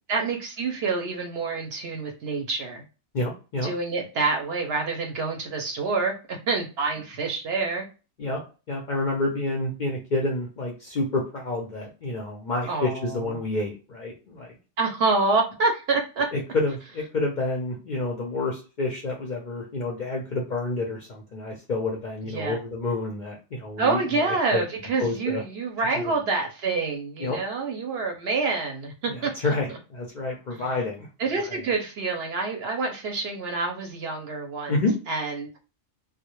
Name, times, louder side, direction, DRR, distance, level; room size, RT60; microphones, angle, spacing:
voice 1, 0.1-2.8 3.6-7.9 12.7-12.9 14.8-16.3 22.3-22.6 23.8-29.3 31.2-34.7 35.1-35.5, right 4 dB, 65° right, 3 dB, 0.7 m, -27 dB
voice 2, 3.1-3.7 8.2-14.6 16.3-24.6 25.0-25.4 25.9-26.1 27.2-27.4 29.0-31.1 31.4-31.6 34.7-35.0, left 2 dB, 60° left, -2 dB, 0.5 m, -29 dB
2.1 x 2.1 x 2.8 m, 0.33 s
omnidirectional pair, 1.3 m